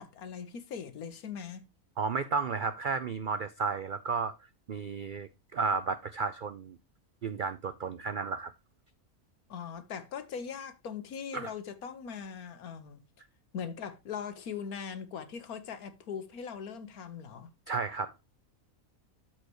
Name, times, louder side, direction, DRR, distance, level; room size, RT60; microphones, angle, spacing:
voice 1, 0.0-1.6 9.5-13.0 13.5-17.5, left 7 dB, 75° left, 1.5 m, -40 dB
voice 2, 2.0-4.3 4.7-6.8 7.2-8.5 11.3-11.5 17.7-18.1, right 5 dB, 75° right, 0.4 m, -33 dB
13.0 x 4.6 x 3.0 m
omnidirectional pair, 1.6 m